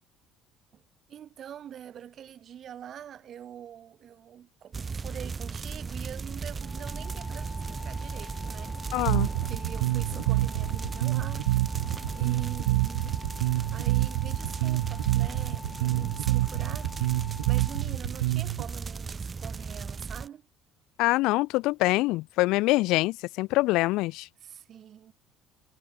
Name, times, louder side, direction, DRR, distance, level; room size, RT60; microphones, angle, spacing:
voice 1, 1.1-8.8 9.5-11.5 12.1-13.2 13.7-20.4 24.4-25.1, right 9 dB, 55° right, 4.4 m, -44 dB
sound 1, 4.7-20.3, right 5 dB, 30° right, 2.4 m, -36 dB
sound 2, 6.6-17.8, left 6 dB, 40° left, 2.0 m, -47 dB
voice 2, 8.9-9.3 21.0-24.3, left 20 dB, 75° left, 0.7 m, -25 dB
Bass guitar, 9.1-18.6, right 20 dB, 85° right, 1.1 m, -27 dB
hypercardioid pair, 70°, 0 cm